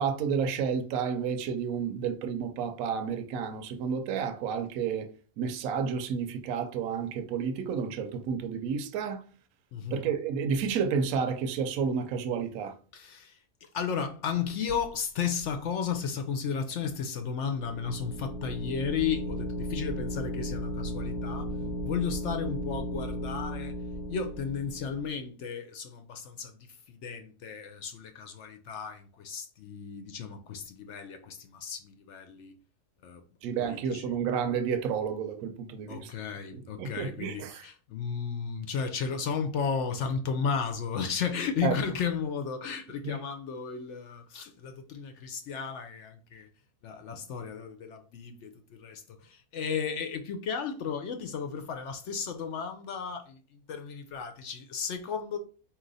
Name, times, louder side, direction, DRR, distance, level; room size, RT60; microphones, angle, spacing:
voice 1, 0.0-5.1 5.4-9.2 9.9-12.8 33.4-36.1 36.5-37.7 41.6-41.7 43.0-43.2, right 6 dB, 75° right, 1.0 m, -31 dB
voice 2, 9.7-10.1 12.9-21.5 21.8-23.7 24.1-26.6 26.9-32.5 33.0-33.2 33.6-34.1 35.9-46.5 46.8-55.4, left 6 dB, 65° left, 0.7 m, -34 dB
sound 1, 17.4-25.1, equal, 45° right, 0.7 m, -35 dB
4.3 x 2.7 x 3.9 m
omnidirectional pair, 1.6 m